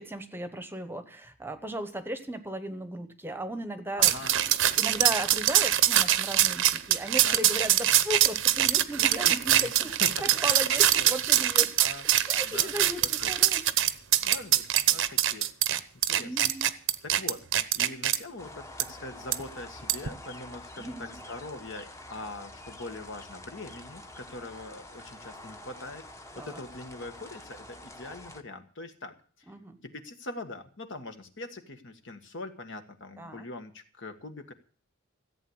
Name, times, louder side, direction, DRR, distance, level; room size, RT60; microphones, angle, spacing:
voice 1, 0.0-9.9 10.2-11.8 12.3-13.7 16.2-16.7 20.8-21.2 26.4-26.6 29.5-29.8 33.2-33.5, right 1 dB, 10° right, 10 dB, 1.0 m, -36 dB
voice 2, 3.9-4.3 7.2-7.4 9.5-9.7 10.0-10.1 10.7-11.1 11.8-12.0 12.4-12.7 13.0-13.3 14.2-15.5 16.0-16.4 17.0-26.0 26.3-29.5 29.8-34.5, left 2 dB, 60° left, 7 dB, 1.6 m, -42 dB
sound 1, 4.0-18.2 18.8-18.9 19.3-19.4 19.9-20.1, right 12 dB, 60° right, 0.8 m, -24 dB
sound 2, 18.4-28.4, left 1 dB, 15° left, 1.0 m, -47 dB
15.0 x 8.4 x 8.0 m, 0.44 s
head